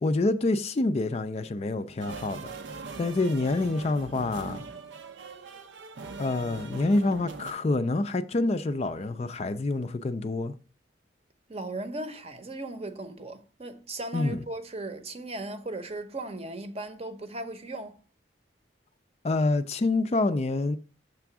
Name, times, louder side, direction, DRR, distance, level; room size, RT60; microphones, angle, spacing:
voice 1, 0.0-2.5 3.0-4.6 6.2-10.5 14.1-14.4 19.2-20.8, left 2 dB, 35° left, 0.4 m, -27 dB
sound 1, 2.0-7.5, right 4 dB, 85° right, 0.6 m, -41 dB
voice 2, 11.5-18.0, right 2 dB, 35° right, 0.7 m, -37 dB
6.8 x 3.5 x 5.9 m
head